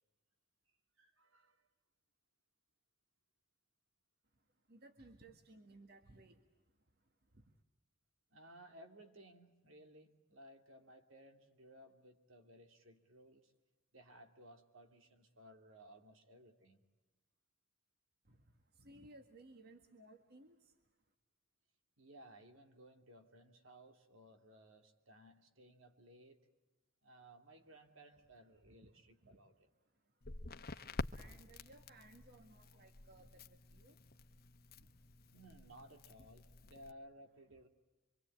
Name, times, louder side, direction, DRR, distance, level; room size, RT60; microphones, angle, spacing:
voice 1, 1.0-1.6 8.3-13.5 13.9-16.8 22.0-26.4 27.0-29.7 35.3-37.7, right 1 dB, 75° right, 5 dB, 2.7 m, -59 dB
voice 2, 4.7-6.4 18.8-20.6 30.7-30.9 31.2-33.4 33.7-33.9, right 2 dB, 50° right, 6 dB, 1.8 m, -59 dB
Crackle, 30.2-36.9, left 2 dB, 50° left, 1.1 m, -49 dB
26.0 x 25.5 x 8.6 m, 1.1 s
head